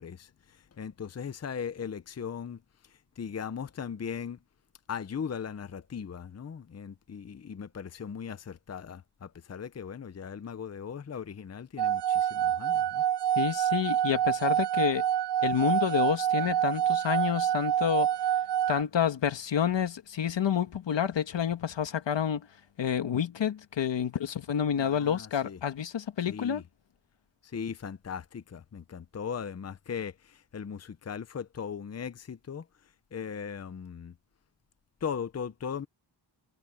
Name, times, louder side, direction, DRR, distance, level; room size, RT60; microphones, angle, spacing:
voice 1, 0.0-4.4 4.9-13.0 24.8-25.6 26.3-26.6 27.4-32.7 33.1-34.1 35.0-35.9, left 7 dB, 35° left, 0.7 m, -38 dB
sound 1, 11.8-18.8, right 10 dB, 70° right, 0.7 m, -27 dB
voice 2, 13.4-15.0 15.4-18.1 18.7-22.4 22.8-26.6, left 8 dB, 80° left, 1.7 m, -29 dB
wide cardioid pair, 110°, 43 cm